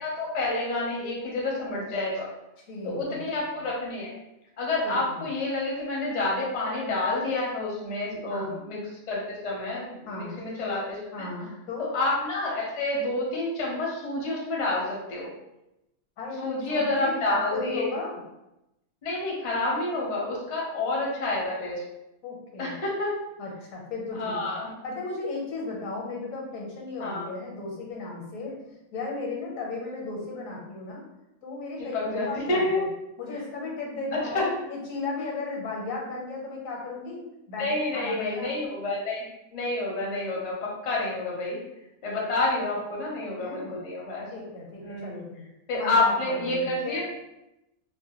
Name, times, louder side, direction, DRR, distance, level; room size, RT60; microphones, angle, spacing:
voice 1, 0.0-2.3 2.8-4.1 4.6-8.8 9.1-11.3 11.8-15.3 16.4-17.9 19.0-21.8 22.6-23.2 24.1-24.7 27.0-27.3 31.9-32.9 34.1-34.5 37.6-39.2 39.5-41.6 42.0-44.3 44.8-45.2 45.7-47.1, left 2 dB, 45° left, -3 dB, 0.5 m, -28 dB
voice 2, 2.7-3.2 4.8-5.3 8.3-8.6 10.1-10.4 11.1-11.9 16.2-18.2 22.2-22.8 23.4-24.5 24.8-28.5 28.9-31.0 31.4-32.8 33.2-38.5 43.4-43.8 44.3-45.4 45.7-47.0, left 3 dB, 75° left, -1 dB, 1.1 m, -35 dB
2.5 x 2.1 x 2.8 m, 0.90 s
omnidirectional pair, 1.4 m